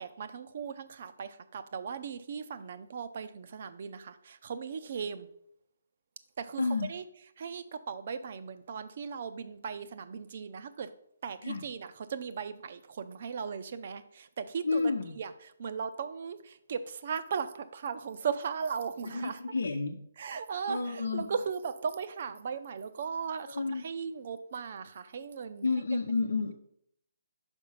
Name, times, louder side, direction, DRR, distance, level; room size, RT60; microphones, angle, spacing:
voice 1, 0.0-5.3 6.4-6.6 6.9-7.0 7.4-10.9 11.2-19.4 20.2-25.7, right 6 dB, 50° right, 12 dB, 0.5 m, -37 dB
voice 2, 6.6-6.9 11.4-11.6 14.6-15.2 19.1-20.0 20.7-21.3 23.5-23.8 25.6-26.5, left 4 dB, 80° left, 1 dB, 0.7 m, -30 dB
5.3 x 4.8 x 5.5 m, 0.71 s
hypercardioid pair, 150°, 0 cm